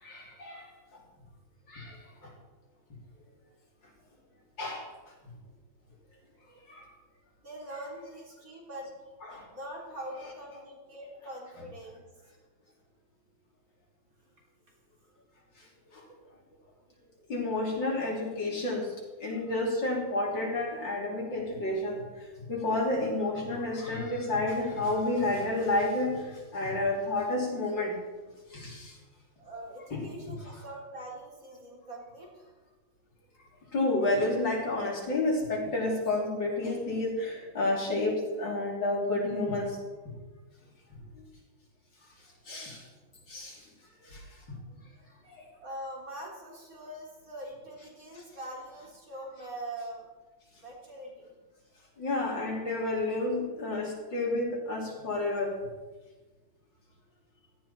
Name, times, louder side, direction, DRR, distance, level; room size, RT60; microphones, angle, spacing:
voice 1, 0.0-0.7 1.7-2.3 4.6-4.9 6.7-6.9 9.2-9.5 15.9-16.0 17.3-18.9 19.2-28.0 28.5-29.0 29.9-30.1 30.4-30.6 33.7-39.8 42.5-42.9 43.3-43.6 44.0-44.2 45.3-45.4 48.1-48.2 52.0-55.6, left 2 dB, 60° left, -2 dB, 4.1 m, -30 dB
voice 2, 7.4-8.9 9.3-12.0 29.4-32.6 44.7-44.9 45.6-50.1 50.6-51.4, right 1 dB, 40° right, -3 dB, 4.4 m, -43 dB
17.0 x 14.0 x 4.4 m, 1.2 s
omnidirectional pair, 2.3 m